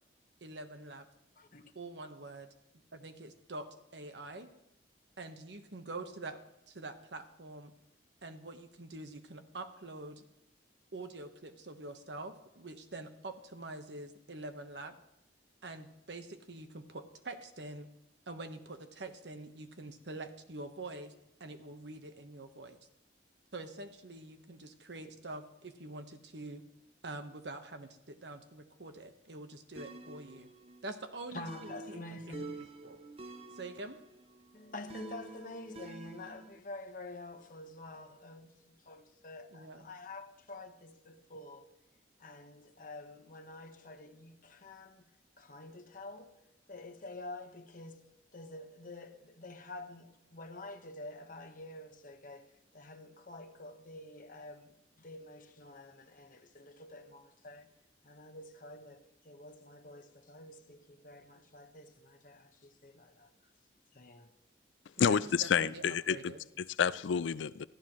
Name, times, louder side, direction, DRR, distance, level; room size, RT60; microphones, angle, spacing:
voice 1, 0.4-1.1 1.7-2.5 2.9-3.7 3.9-4.5 5.2-6.4 6.7-7.7 8.2-10.3 10.9-15.0 15.6-17.9 18.3-21.1 21.4-22.8 23.5-26.6 27.0-30.5 30.8-33.0 33.5-34.0 39.5-39.8 65.0-66.4, right 2 dB, 70° right, 1.2 m, -45 dB
voice 2, 1.4-1.7 31.3-32.7 34.5-41.7 42.2-45.1 45.4-46.4 46.7-48.1 48.3-57.7 58.0-63.3 63.9-64.4, left 2 dB, 50° left, 1.3 m, -48 dB
sound 1, 29.8-36.6, right 2 dB, 35° right, 0.6 m, -49 dB
voice 3, 65.0-67.6, left 7 dB, 85° left, 0.4 m, -30 dB
18.5 x 14.5 x 3.1 m
head